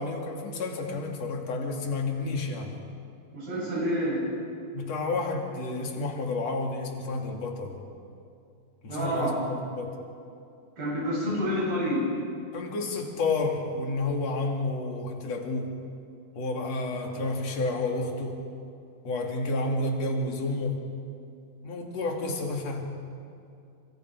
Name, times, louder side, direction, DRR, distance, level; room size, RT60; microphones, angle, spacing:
voice 1, 0.0-2.8 4.7-7.8 8.8-10.0 12.5-15.7 16.3-18.4 19.0-20.8 21.6-22.9, left 2 dB, 50° left, 1 dB, 3.5 m, -30 dB
voice 2, 3.3-4.3 8.9-9.3 10.8-12.1, equal, 90° right, -5 dB, 10.0 m, -28 dB
30.0 x 26.5 x 4.7 m, 2.5 s
omnidirectional pair, 4.1 m